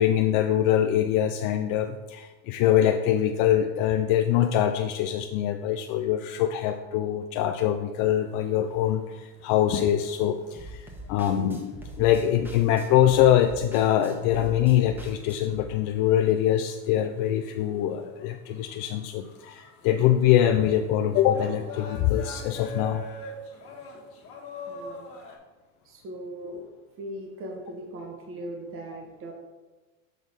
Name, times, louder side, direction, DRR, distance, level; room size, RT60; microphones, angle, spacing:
voice 1, 0.0-10.8 11.1-23.0, left 11 dB, 60° left, 6 dB, 0.5 m, -23 dB
sound 1, 7.9-25.4, left 2 dB, 40° left, 1.7 m, -45 dB
sound 2, 10.6-15.6, right 1 dB, 5° right, 1.3 m, -43 dB
voice 2, 24.7-25.1 25.8-26.6 27.0-29.3, right 1 dB, 35° right, 0 dB, 1.3 m, -39 dB
6.3 x 3.9 x 5.2 m, 1.2 s
supercardioid pair, 115°, 37 cm